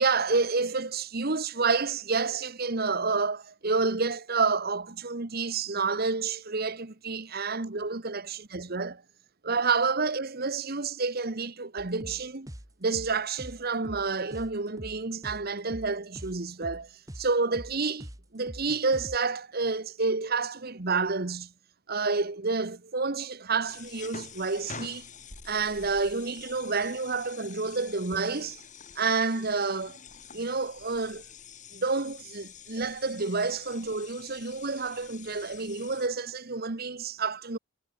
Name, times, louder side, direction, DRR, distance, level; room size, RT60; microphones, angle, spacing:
voice 1, 0.0-9.0 9.4-12.5 12.8-16.9 17.2-18.1 18.3-21.5 21.9-25.1 25.4-28.6 29.0-30.0 30.3-31.2 31.7-37.6, right 4 dB, 45° right, 1.3 m, -29 dB
sound 1, 11.8-19.2, equal, 15° right, 2.2 m, -43 dB
sound 2, 23.7-36.1, left 6 dB, 35° left, 5.2 m, -47 dB
head